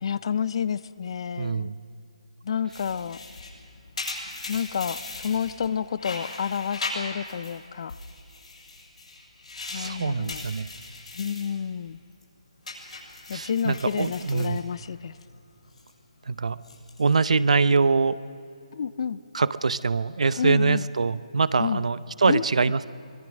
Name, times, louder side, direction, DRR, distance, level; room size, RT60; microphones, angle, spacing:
voice 1, 0.0-1.7 2.4-3.2 4.5-7.9 9.7-10.4 11.1-12.0 13.3-15.2 18.7-19.2 20.4-20.9 21.6-21.8 22.3-22.7, left 7 dB, 50° left, 17 dB, 0.5 m, -29 dB
voice 2, 1.4-1.8 9.7-10.7 13.3-14.6 16.3-16.6 17.0-18.2 19.3-22.8, right 4 dB, 65° right, 17 dB, 0.7 m, -23 dB
sound 1, 2.7-5.7 6.0-7.6 7.9-11.5 11.9-12.2 12.6-15.2 15.5-15.9 16.5-17.1, left 3 dB, 70° left, 7.1 m, -39 dB
24.0 x 21.0 x 6.4 m, 2.7 s
figure-of-eight pair, 145°, 4 cm